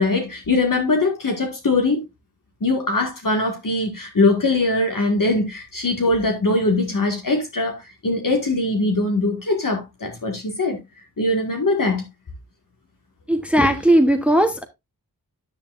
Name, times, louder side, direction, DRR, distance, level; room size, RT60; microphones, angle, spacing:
voice 1, 0.0-2.0 2.6-10.8 11.2-12.0, left 2 dB, 55° left, 1.9 m, -21 dB
voice 2, 13.3-14.6, right 1 dB, 5° right, 1.0 m, -17 dB
10.0 x 8.5 x 2.5 m
wide cardioid pair, 70°, 38 cm